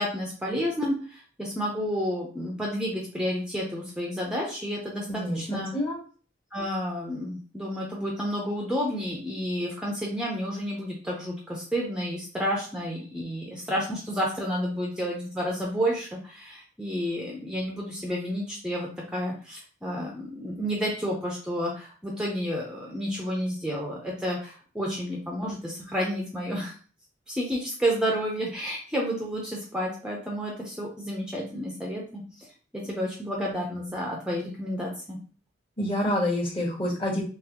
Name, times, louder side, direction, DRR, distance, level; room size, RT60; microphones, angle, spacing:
voice 1, 0.0-5.7 6.5-26.7 27.3-32.5 32.7-35.2, equal, 5° right, -3 dB, 0.7 m, -30 dB
voice 2, 5.1-6.0 35.8-37.2, left 1 dB, 30° left, -3 dB, 1.3 m, -27 dB
4.0 x 3.1 x 2.9 m, 0.40 s
head